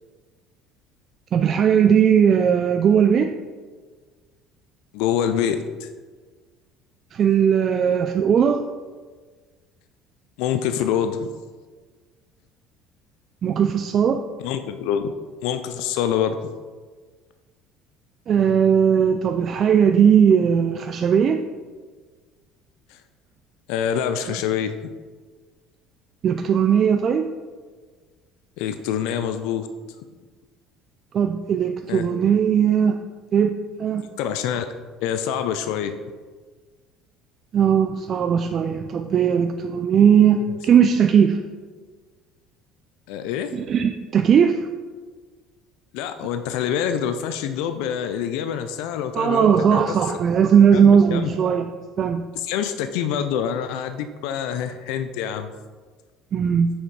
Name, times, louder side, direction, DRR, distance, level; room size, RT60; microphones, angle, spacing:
voice 1, 1.3-3.3 7.1-8.6 13.4-14.2 18.3-21.4 26.2-27.3 31.1-33.0 33.3-33.5 33.8-34.1 37.5-41.4 43.5-44.7 49.1-51.7 52.0-52.2 56.3-56.7, right 7 dB, 45° right, 6 dB, 0.3 m, -18 dB
voice 2, 4.9-5.9 10.4-11.3 14.4-15.1 15.4-16.4 22.9-23.0 23.7-24.9 28.6-29.7 31.9-32.1 34.2-34.7 35.0-35.9 43.1-43.5 45.9-50.1 50.7-51.4 52.4-55.5, left 9 dB, 80° left, 8 dB, 0.3 m, -26 dB
6.3 x 3.3 x 4.6 m, 1.4 s
supercardioid pair, 100°, 0 cm